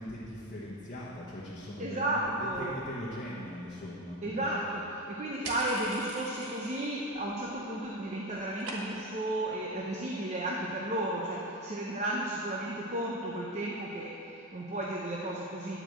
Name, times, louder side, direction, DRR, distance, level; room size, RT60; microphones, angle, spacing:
voice 1, 0.0-4.5, equal, 35° left, -8 dB, 1.2 m, -40 dB
voice 2, 1.8-2.8 4.2-15.8, right 1 dB, 30° right, -3 dB, 0.7 m, -33 dB
sound 1, 5.4-7.0 7.3-7.9 8.1-9.2, right 2 dB, 70° right, 1.3 m, -42 dB
10.0 x 5.0 x 7.7 m, 2.9 s
head